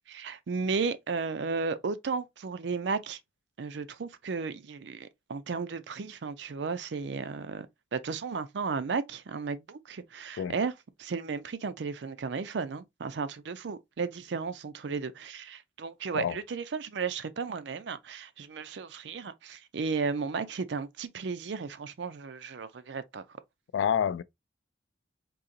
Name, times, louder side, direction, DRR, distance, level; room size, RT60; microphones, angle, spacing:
voice 1, 0.1-3.2 3.6-7.7 7.9-10.7 11.0-23.2, right 5 dB, 70° right, 0.4 m, -34 dB
voice 2, 23.7-24.2, left 8 dB, 85° left, 0.3 m, -28 dB
3.9 x 2.8 x 2.6 m
head